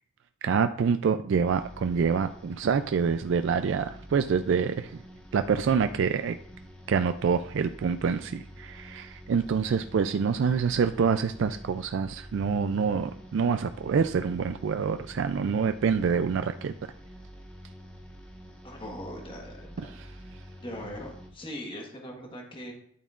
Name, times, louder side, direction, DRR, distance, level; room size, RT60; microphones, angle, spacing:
voice 1, 0.4-5.0 5.3-6.4 6.9-16.7 19.9-20.1, right 6 dB, 60° right, 9 dB, 0.3 m, -26 dB
sound 1, 1.4-21.3, equal, 5° left, 1.3 m, -47 dB
voice 2, 18.6-20.0 20.6-22.7, equal, 25° left, 1 dB, 1.3 m, -40 dB
10.5 x 9.0 x 2.4 m, 0.67 s
head